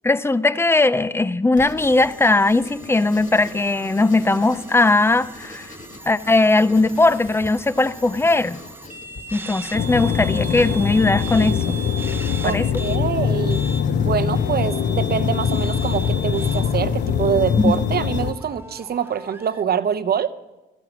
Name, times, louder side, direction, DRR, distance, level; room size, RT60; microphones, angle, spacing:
voice 1, 0.0-5.7 6.1-8.6 9.3-11.8 12.4-12.6 17.6-17.7, left 2 dB, 15° left, 17 dB, 0.5 m, -19 dB
Writing, 1.6-18.2, left 2 dB, 40° left, 2.1 m, -44 dB
sound 1, 1.8-13.0 13.4-19.6, right 2 dB, 10° right, 0.8 m, -39 dB
sound 2, 9.7-18.3, left 7 dB, 65° left, 0.8 m, -22 dB
voice 2, 12.4-13.6 14.0-20.3, right 8 dB, 55° right, 13 dB, 0.8 m, -24 dB
14.0 x 10.5 x 6.0 m, 1.1 s
cardioid pair, 90°, 19 cm